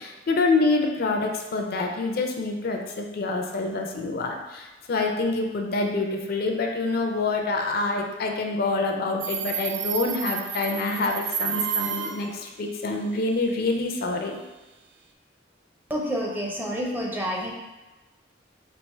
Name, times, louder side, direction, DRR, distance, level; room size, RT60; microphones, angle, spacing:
voice 1, 0.0-14.4, left 3 dB, 55° left, 3 dB, 0.4 m, -26 dB
Subway metro underground, 9.2-12.3, right 7 dB, 80° right, 0.4 m, -30 dB
voice 2, 15.9-17.5, equal, 10° right, -2 dB, 0.5 m, -28 dB
4.4 x 2.5 x 3.2 m, 1.1 s
head